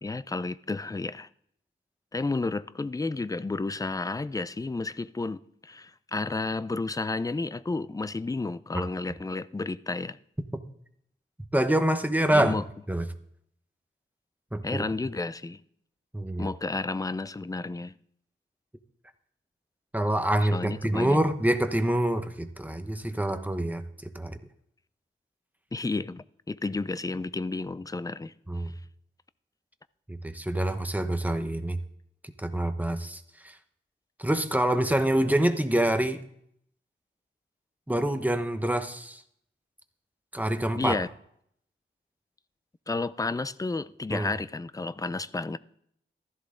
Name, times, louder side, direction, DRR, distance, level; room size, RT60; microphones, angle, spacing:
voice 1, 0.0-1.3 2.1-10.2 12.3-12.6 14.6-15.6 16.4-17.9 20.5-21.2 25.7-28.3 40.7-41.1 42.9-45.6, left 3 dB, 15° left, 0.4 m, -31 dB
voice 2, 11.5-12.6 12.9-13.1 14.5-14.8 16.1-16.5 19.9-24.4 28.5-28.7 30.1-31.8 32.4-33.6 34.2-36.2 37.9-39.2 40.3-41.0 44.1-44.3, right 1 dB, 10° right, 1.0 m, -26 dB
15.0 x 13.5 x 3.8 m
wide cardioid pair, 95°, 21 cm